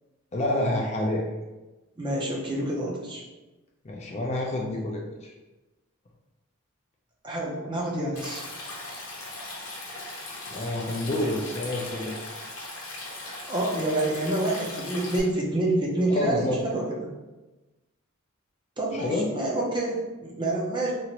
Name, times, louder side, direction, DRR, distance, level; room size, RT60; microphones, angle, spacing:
voice 1, 0.3-1.2 3.8-5.3 10.5-12.3 16.1-16.6 18.9-19.3, left 1 dB, 30° left, -1 dB, 0.4 m, -28 dB
voice 2, 2.0-3.2 7.2-8.4 13.5-17.1 18.8-20.9, right 1 dB, 20° right, -3 dB, 0.5 m, -27 dB
Stream, 8.2-15.2, left 2 dB, 80° left, 0.8 m, -39 dB
2.9 x 2.5 x 2.9 m, 1.1 s
head